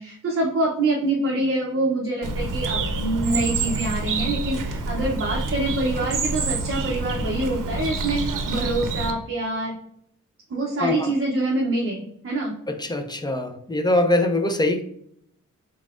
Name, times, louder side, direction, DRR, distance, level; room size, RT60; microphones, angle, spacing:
voice 1, 0.0-9.8 10.5-12.5, right 2 dB, 45° right, -2 dB, 0.6 m, -25 dB
Bird, 2.2-9.1, right 3 dB, 85° right, 0.6 m, -27 dB
voice 2, 10.8-11.1 12.7-14.8, left 2 dB, 15° left, 7 dB, 0.4 m, -23 dB
4.0 x 3.6 x 2.4 m, 0.72 s
wide cardioid pair, 145°, 31 cm